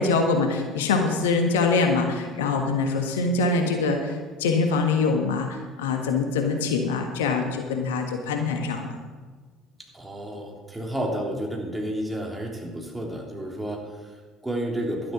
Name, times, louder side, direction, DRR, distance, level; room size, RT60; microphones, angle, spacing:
voice 1, 0.0-8.9, left 4 dB, 75° left, 4 dB, 1.4 m, -24 dB
voice 2, 9.9-15.1, right 1 dB, 10° right, 0 dB, 3.3 m, -31 dB
12.0 x 10.5 x 6.0 m, 1.4 s
figure-of-eight pair, 55°, 0 cm